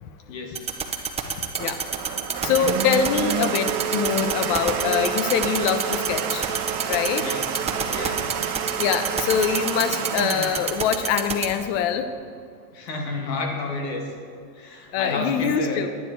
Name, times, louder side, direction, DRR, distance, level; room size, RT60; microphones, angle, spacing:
voice 1, 0.3-0.9 7.2-7.4 7.9-8.2 12.7-14.1 14.5-15.9, left 3 dB, 85° left, 2 dB, 2.3 m, -31 dB
sound 1, 0.6-11.5, right 6 dB, 15° right, 0.8 m, -25 dB
Domestic sounds home sounds, 1.3-11.9, right 8 dB, 45° right, 1.0 m, -29 dB
voice 2, 2.4-6.5 6.9-7.2 8.8-12.1 14.9-15.9, left 8 dB, 50° left, 10 dB, 0.9 m, -24 dB
10.5 x 9.9 x 4.6 m, 2.3 s
supercardioid pair, 120°, 49 cm